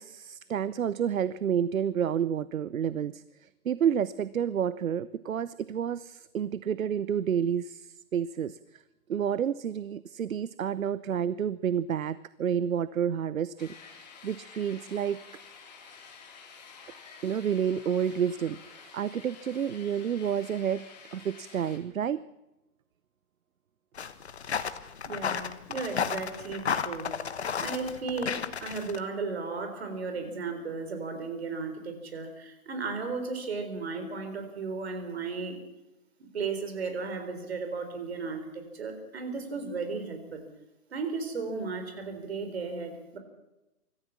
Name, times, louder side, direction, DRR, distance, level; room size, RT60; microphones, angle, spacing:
voice 1, 0.0-8.8 9.1-15.2 17.2-22.2, right 8 dB, 65° right, 17 dB, 0.8 m, -30 dB
sound 1, 13.6-21.8, left 5 dB, 30° left, 3.1 m, -50 dB
sound 2, 23.9-29.0, left 7 dB, 45° left, 1.3 m, -33 dB
voice 2, 25.1-35.6 36.2-40.4 40.9-43.2, right 4 dB, 45° right, 7 dB, 4.2 m, -35 dB
25.0 x 14.0 x 7.3 m, 0.97 s
hypercardioid pair, 175°, 44 cm